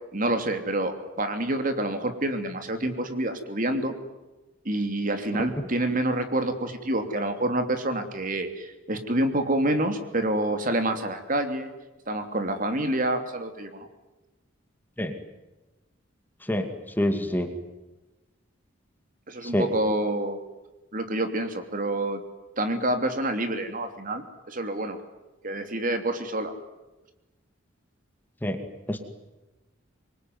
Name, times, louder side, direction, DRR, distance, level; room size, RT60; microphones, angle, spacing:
voice 1, 0.1-3.9 4.6-11.7 12.1-13.9 19.3-20.4 20.9-22.2 22.6-25.0 25.4-26.5, right 1 dB, 40° right, 7 dB, 3.1 m, -27 dB
voice 2, 17.0-17.5 19.4-19.7 28.4-28.6 28.9-29.0, equal, 10° left, 6 dB, 2.4 m, -26 dB
26.5 x 23.5 x 9.6 m, 1.1 s
head